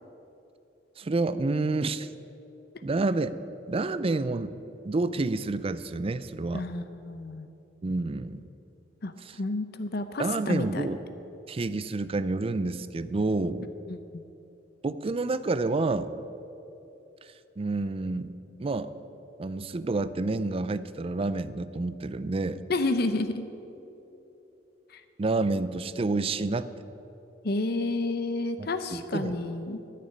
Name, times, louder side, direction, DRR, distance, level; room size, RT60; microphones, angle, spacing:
voice 1, 1.0-2.1 2.8-3.3 3.7-4.5 4.8-6.7 7.8-8.5 9.3-9.4 10.2-11.0 11.5-13.7 14.8-16.1 17.6-18.3 18.6-18.9 19.4-22.6 25.2-26.7 28.6-29.4, right 3 dB, 30° right, 14 dB, 0.4 m, -29 dB
voice 2, 6.5-7.5 9.0-10.9 13.9-14.2 22.7-23.4 24.9-25.0 27.4-29.8, left 2 dB, 60° left, 9 dB, 0.7 m, -30 dB
12.5 x 6.8 x 9.8 m, 3.0 s
head